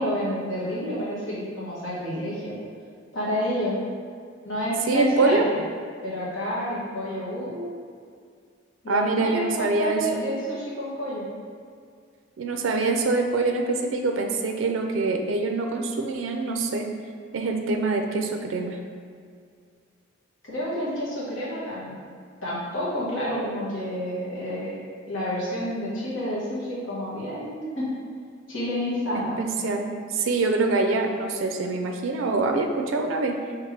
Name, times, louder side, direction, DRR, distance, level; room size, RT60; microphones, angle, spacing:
voice 1, 0.0-2.6 3.1-3.7 4.4-5.4 6.0-7.8 8.8-11.2 20.4-21.9 22.4-24.8 25.1-27.9 28.5-29.3, equal, 70° left, -7 dB, 1.3 m, -29 dB
voice 2, 4.9-5.5 8.9-10.2 12.4-16.9 17.3-18.8 29.1-33.4, right 3 dB, 70° right, 4 dB, 0.4 m, -25 dB
5.0 x 3.3 x 3.2 m, 2.2 s
head